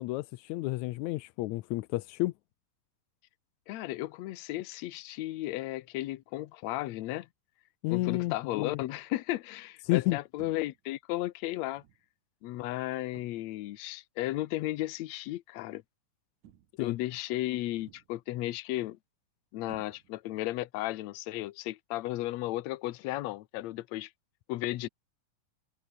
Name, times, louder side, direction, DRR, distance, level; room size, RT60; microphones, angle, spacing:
voice 1, 0.0-2.3 7.8-8.8 9.9-10.2 16.8-17.0, left 19 dB, 85° left, 1.7 m, -31 dB
voice 2, 3.7-7.3 7.9-11.8 12.4-15.8 16.8-19.0 19.5-24.1 24.5-24.9, left 16 dB, 70° left, 1.8 m, -34 dB
sound 1, 10.4-10.9 11.8-12.1 13.1-13.6 14.7-15.0 16.4-16.9 17.8-18.3 19.7-20.4, right 11 dB, 65° right, 2.8 m, -57 dB
omnidirectional pair, 3.9 m